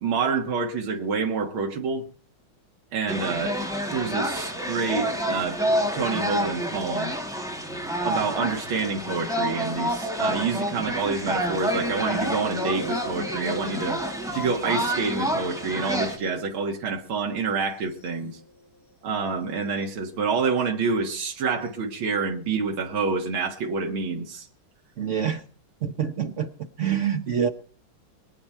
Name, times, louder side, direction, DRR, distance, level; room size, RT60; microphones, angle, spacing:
voice 1, 0.0-2.0 2.9-3.6 3.9-5.6 5.9-7.1 8.0-14.0 14.3-18.4 19.0-24.5, right 4 dB, 80° right, 1 dB, 2.4 m, -27 dB
sound 1, 3.1-16.2, equal, ahead, 1.8 m, -28 dB
sound 2, 11.4-20.1 21.4-21.7 23.4-23.5, equal, 50° left, 8.7 m, -42 dB
voice 2, 25.0-25.4 25.8-26.5 26.8-27.5, right 8 dB, 60° right, 7 dB, 0.8 m, -26 dB
23.0 x 8.7 x 4.5 m, 0.40 s
omnidirectional pair, 2.2 m